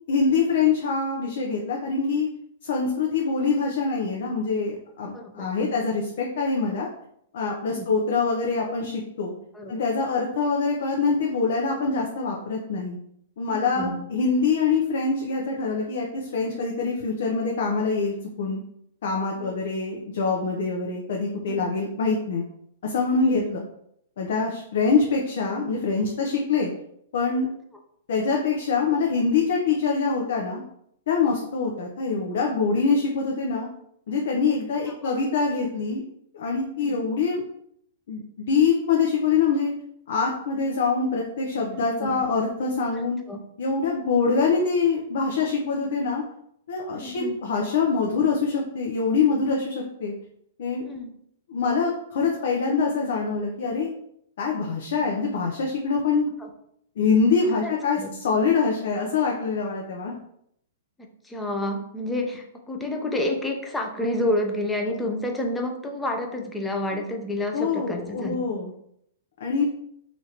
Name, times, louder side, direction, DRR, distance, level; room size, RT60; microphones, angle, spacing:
voice 1, 0.1-2.3 2.6-6.9 7.3-9.3 9.7-13.0 13.4-18.6 19.0-22.4 22.8-23.7 24.2-26.7 27.1-27.5 28.1-30.6 31.1-33.7 34.1-36.0 36.3-37.4 38.1-39.7 40.1-43.2 43.6-46.2 46.7-50.1 50.6-50.8 51.5-53.9 54.4-56.3 57.0-58.0 58.2-60.1 67.5-68.7 69.4-69.6, left 4 dB, 65° left, -1 dB, 0.5 m, -24 dB
voice 2, 5.1-5.7 7.7-7.9 9.5-9.7 13.5-14.0 19.4-19.7 21.5-21.7 23.2-23.4 31.4-31.5 34.9-35.2 36.8-37.0 41.7-42.2 42.9-43.4 46.9-47.4 50.8-51.1 56.4-56.5 57.6-58.1 61.0-68.4 69.6-69.7, left 1 dB, 10° left, 2 dB, 0.5 m, -30 dB
3.1 x 2.5 x 2.8 m, 0.73 s
hypercardioid pair, 135°, 0 cm